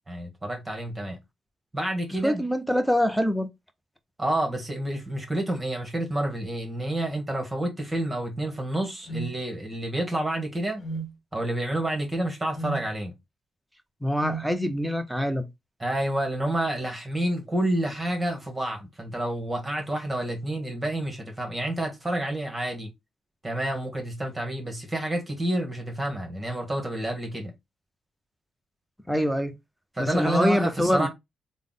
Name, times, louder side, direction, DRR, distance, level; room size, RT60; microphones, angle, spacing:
voice 1, 0.1-1.2 1.7-2.4 4.2-10.8 11.3-13.1 15.8-22.9 23.4-27.5 29.9-31.1, right 1 dB, 20° right, 1.3 m, -29 dB
voice 2, 2.2-3.5 14.0-15.4 29.1-29.5 30.0-31.1, equal, ahead, 0.7 m, -24 dB
sound 1, 9.1-9.3 10.8-11.1 12.5-12.8 14.2-14.5, right 3 dB, 50° left, 0.8 m, -33 dB
3.4 x 2.1 x 3.9 m
cardioid pair, 70°, 0 cm